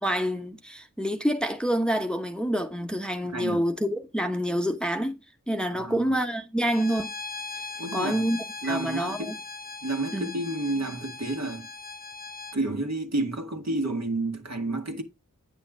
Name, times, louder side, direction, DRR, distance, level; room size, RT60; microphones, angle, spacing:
voice 1, 0.0-5.1 5.5-7.1 7.9-9.4 10.1-10.3, equal, 5° left, 1.1 m, -27 dB
voice 2, 3.2-3.6 5.7-6.1 7.8-8.3 8.6-9.4 9.8-11.7 12.5-15.0, right 2 dB, 55° right, 1.7 m, -30 dB
Bowed string instrument, 6.6-12.6, left 3 dB, 30° left, 0.8 m, -39 dB
8.8 x 6.4 x 3.6 m
wide cardioid pair, 55°, 31 cm